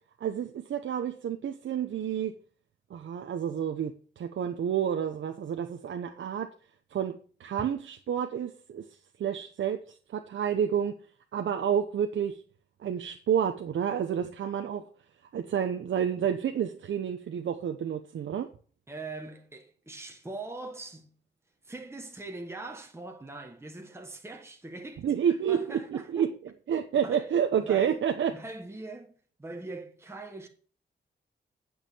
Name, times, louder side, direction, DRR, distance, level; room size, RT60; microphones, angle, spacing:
voice 1, 0.2-2.3 2.9-6.5 6.9-8.8 9.2-9.8 10.1-11.0 11.3-12.4 12.8-14.8 15.3-18.5 25.0-28.3, right 8 dB, 90° right, 0.9 m, -29 dB
voice 2, 18.9-21.1 21.6-26.2 27.0-27.3 27.6-29.1 29.4-30.5, right 2 dB, 15° right, 1.4 m, -42 dB
9.2 x 6.5 x 7.2 m
wide cardioid pair, 115°, 19 cm